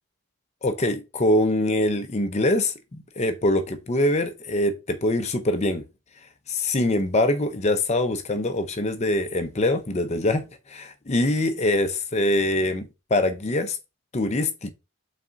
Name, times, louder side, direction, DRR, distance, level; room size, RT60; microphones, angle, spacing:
voice 1, 0.6-5.8 6.5-13.8 14.1-14.7, left 1 dB, 30° left, 0.6 m, -24 dB
5.9 x 4.1 x 3.9 m
head